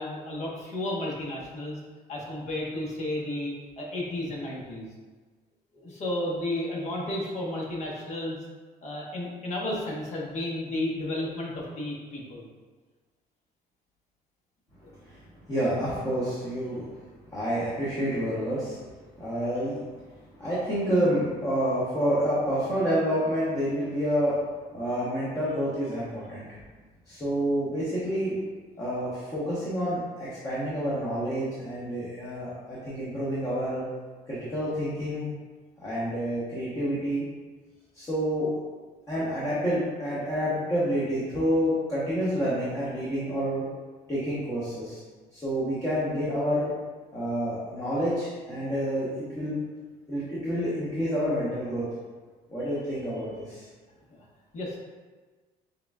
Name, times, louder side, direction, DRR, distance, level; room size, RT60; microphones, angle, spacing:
voice 1, 0.0-1.8 2.1-4.9 5.7-8.4 8.8-12.5 14.8-14.9 54.1-54.3 54.5-54.8, left 1 dB, 45° left, -4 dB, 1.1 m, -32 dB
voice 2, 15.5-16.9 17.3-18.8 19.2-19.8 20.4-24.3 24.7-26.5 27.1-28.3 28.8-33.8 34.3-35.3 35.8-37.2 37.9-38.5 39.1-43.6 44.1-45.0 45.3-46.7 47.1-49.6 50.1-51.9 52.5-53.6, equal, 20° left, -10 dB, 1.0 m, -28 dB
6.7 x 2.3 x 2.3 m, 1.4 s
cardioid pair, 115°, 17 cm